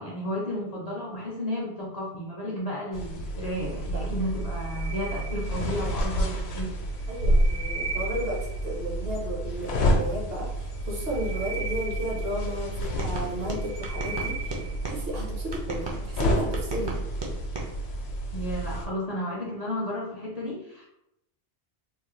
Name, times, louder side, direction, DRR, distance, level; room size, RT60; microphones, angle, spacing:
voice 1, 0.0-6.7 18.3-20.9, equal, 50° left, -4 dB, 0.5 m, -33 dB
sound 1, 2.9-18.9, equal, 75° left, 0.8 m, -30 dB
sound 2, 4.3-6.0 6.9-8.8 10.7-12.8 13.3-14.9, right 5 dB, 80° right, 1.4 m, -38 dB
voice 2, 7.1-17.0, equal, 65° right, -2 dB, 1.0 m, -33 dB
sound 3, 12.8-15.0 15.5-17.7, right 2 dB, 35° right, 0.4 m, -35 dB
3.1 x 2.1 x 3.0 m, 0.83 s
omnidirectional pair, 1.1 m